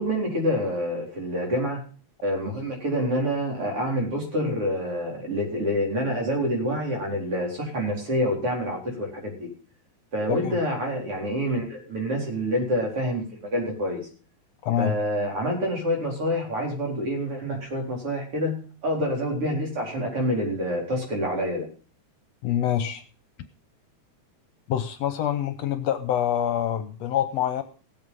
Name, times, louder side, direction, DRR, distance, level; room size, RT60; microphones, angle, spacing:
voice 1, 0.0-1.8 2.2-9.5 10.1-14.0 14.8-21.7, equal, 50° right, 0 dB, 5.1 m, -27 dB
voice 2, 14.6-15.0 22.4-23.0 24.7-27.6, left 10 dB, 70° left, 10 dB, 1.8 m, -26 dB
17.5 x 8.0 x 5.5 m, 0.39 s
omnidirectional pair, 3.4 m